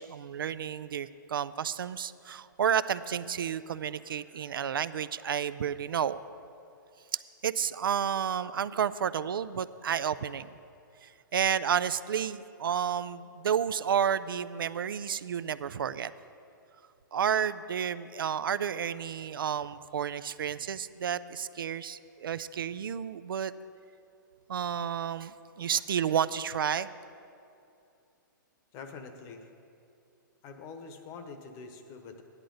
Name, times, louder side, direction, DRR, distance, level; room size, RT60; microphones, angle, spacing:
voice 1, 0.0-6.2 7.4-10.5 11.0-16.1 17.1-23.5 24.5-26.9, right 8 dB, 85° right, 15 dB, 0.4 m, -31 dB
voice 2, 28.7-29.5 30.4-32.2, left 4 dB, 30° left, 7 dB, 0.9 m, -45 dB
13.5 x 10.5 x 3.9 m, 2.6 s
hypercardioid pair, 145°, 11 cm